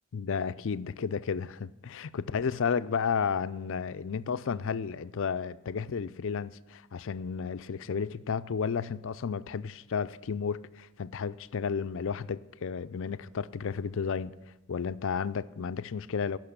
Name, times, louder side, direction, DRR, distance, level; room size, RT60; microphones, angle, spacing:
voice 1, 0.1-14.3 14.7-16.4, left 6 dB, 60° left, 0.4 m, -32 dB
14.5 x 6.1 x 10.0 m
head